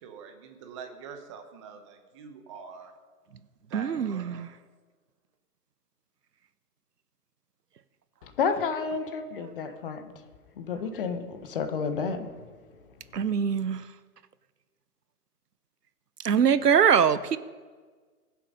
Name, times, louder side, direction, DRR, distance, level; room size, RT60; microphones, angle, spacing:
voice 1, 0.0-2.9 3.7-4.5, right 6 dB, 20° right, 6 dB, 1.0 m, -45 dB
voice 2, 3.7-4.5 13.1-13.8 16.2-17.4, right 7 dB, 90° right, 15 dB, 0.9 m, -23 dB
voice 3, 8.2-10.1 10.6-12.3, left 5 dB, 35° left, 8 dB, 1.2 m, -30 dB
21.0 x 7.5 x 5.3 m, 1.5 s
hypercardioid pair, 150°, 46 cm